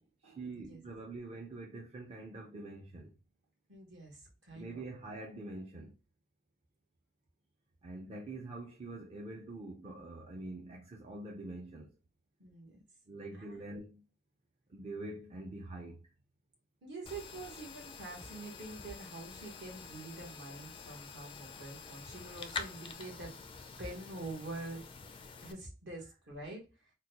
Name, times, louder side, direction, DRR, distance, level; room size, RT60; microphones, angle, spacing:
voice 1, 0.2-3.1 4.5-5.9 7.8-11.9 13.1-14.0 14.7-16.1 20.9-21.0 21.8-21.9, right 2 dB, 30° right, 0.5 m, -45 dB
voice 2, 3.7-4.8 12.4-12.8 13.3-13.6 16.8-23.3 23.8-24.8 25.4-26.6, right 2 dB, 60° right, 1.3 m, -46 dB
sound 1, 17.1-25.5, left 5 dB, 25° left, 0.3 m, -47 dB
3.7 x 2.2 x 2.9 m
head